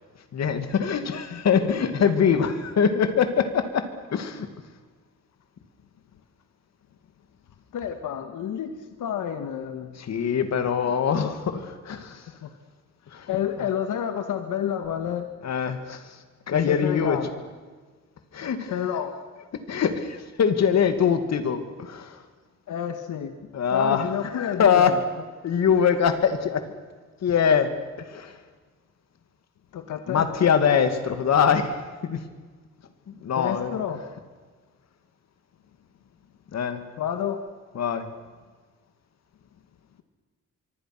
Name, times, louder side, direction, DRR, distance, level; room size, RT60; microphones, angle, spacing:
voice 1, 0.3-3.8 4.1-4.5 10.1-12.3 13.1-13.3 15.4-16.2 16.5-17.2 18.3-18.7 19.7-22.2 23.5-24.9 25.4-26.6 27.2-27.7 28.0-28.4 30.1-32.2 33.1-33.7 36.5-36.8 37.8-38.1, left 7 dB, 60° left, 8 dB, 2.5 m, -23 dB
voice 2, 7.7-9.9 12.3-12.6 13.1-15.3 16.5-17.3 18.7-19.1 22.7-25.0 29.7-30.3 33.4-34.0 37.0-37.4, left 9 dB, 85° left, 7 dB, 1.9 m, -30 dB
25.0 x 24.0 x 6.2 m, 1.4 s
cardioid pair, 140°, 30 cm